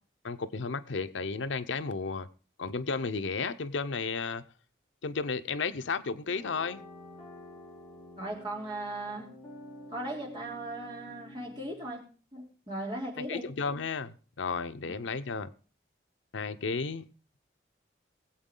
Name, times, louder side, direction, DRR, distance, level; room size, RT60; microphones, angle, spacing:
voice 1, 0.2-2.3 2.6-4.4 5.0-6.8 13.2-15.5 16.3-17.0, left 4 dB, 90° left, 0.7 m, -33 dB
sound 1, 6.3-11.9, left 1 dB, 25° left, 4.7 m, -49 dB
voice 2, 8.2-9.3 9.9-12.0 12.3-13.5 14.9-15.0, right 1 dB, 25° right, 3.8 m, -37 dB
20.0 x 8.1 x 3.8 m
head